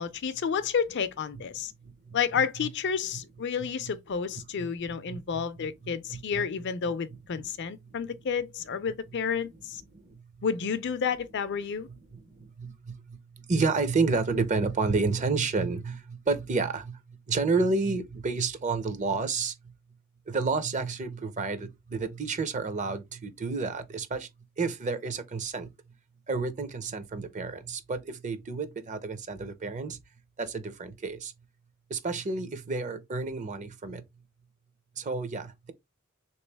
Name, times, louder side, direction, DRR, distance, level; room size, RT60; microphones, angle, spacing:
voice 1, 0.0-1.7 2.1-9.8 10.4-11.9, left 6 dB, 55° left, 0.5 m, -30 dB
voice 2, 1.8-2.2 4.6-6.4 9.9-10.2 12.1-19.5 20.3-24.3 24.6-25.7 26.3-30.0 30.4-31.3 31.9-34.0 35.0-35.7, right 4 dB, 35° right, 0.6 m, -30 dB
3.4 x 3.0 x 3.3 m
head